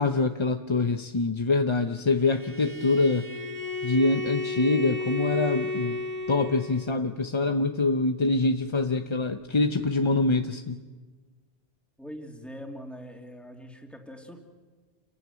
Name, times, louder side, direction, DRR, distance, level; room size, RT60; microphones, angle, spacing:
voice 1, 0.0-3.3 3.8-6.0 6.3-10.8, left 3 dB, 30° left, 6 dB, 0.7 m, -25 dB
Bowed string instrument, 2.2-6.9, left 2 dB, 45° right, 1.8 m, -33 dB
voice 2, 12.0-14.4, equal, ahead, 2 dB, 2.7 m, -42 dB
29.0 x 15.5 x 9.4 m, 1.4 s
omnidirectional pair, 1.1 m